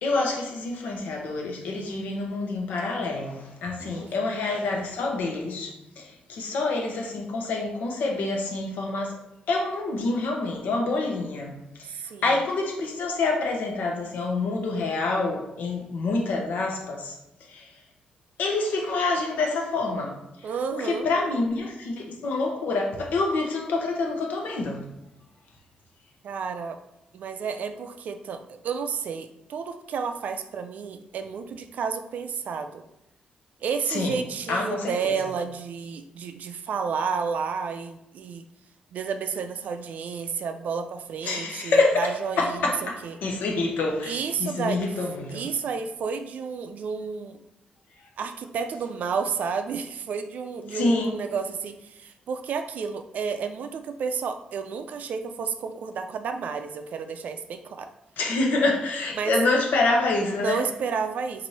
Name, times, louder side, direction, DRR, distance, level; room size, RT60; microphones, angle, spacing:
voice 1, 0.0-6.0 6.3-9.1 9.5-11.5 12.2-17.1 17.5-17.6 18.4-20.2 20.7-24.8 33.9-34.2 34.5-35.1 41.2-42.1 42.4-45.5 50.7-51.1 58.2-60.6, left 3 dB, 85° left, 1 dB, 0.8 m, -27 dB
voice 2, 3.8-4.4 11.8-12.4 20.4-21.1 26.2-26.8 27.1-32.8 33.6-38.5 38.9-43.2 44.0-45.0 45.3-47.4 48.2-57.9 59.1-59.4 60.4-61.5, right 6 dB, 65° right, 8 dB, 0.3 m, -31 dB
3.0 x 2.6 x 4.1 m, 0.88 s
wide cardioid pair, 140°, 3 cm